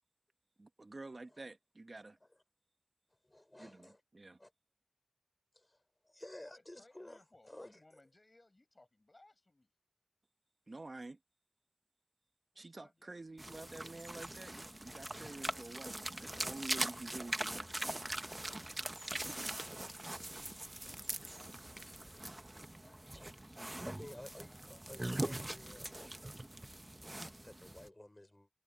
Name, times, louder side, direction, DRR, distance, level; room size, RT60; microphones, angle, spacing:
voice 1, 0.6-2.2 3.6-4.4 10.7-11.2 12.5-17.9, right 2 dB, 55° right, 1.2 m, -49 dB
voice 2, 3.2-4.0 4.4-4.5 5.5-7.8 22.8-23.3 23.6-26.1 27.3-28.5, left 1 dB, 25° left, 4.9 m, -53 dB
voice 3, 6.4-9.7 12.5-13.3 17.1-22.4 23.7-25.1, left 2 dB, 40° left, 5.7 m, -67 dB
sound 1, 13.4-27.9, right 1 dB, 25° right, 1.0 m, -42 dB
wide cardioid pair, 75°, 0 cm